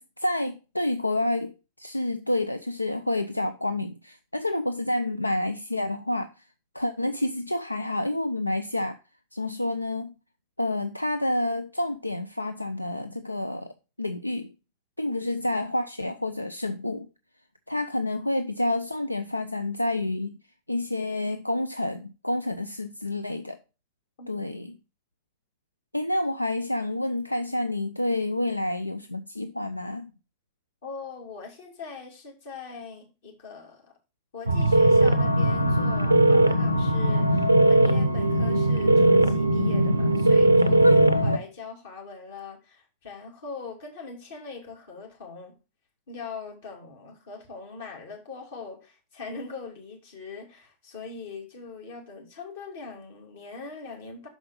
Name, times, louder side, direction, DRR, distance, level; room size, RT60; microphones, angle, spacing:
voice 1, 0.0-6.5 6.7-9.0 9.3-10.1 10.6-13.7 14.0-14.5 15.0-17.1 17.7-20.3 20.7-23.6 24.3-24.8 25.9-30.1, left 1 dB, 85° left, 0.3 m, -29 dB
voice 2, 30.8-33.8 34.3-45.5 46.1-54.3, left 4 dB, 60° left, 2.6 m, -41 dB
sound 1, 34.5-41.4, right 1 dB, 85° right, 0.5 m, -19 dB
6.0 x 5.2 x 5.1 m
figure-of-eight pair, 90°, 0 cm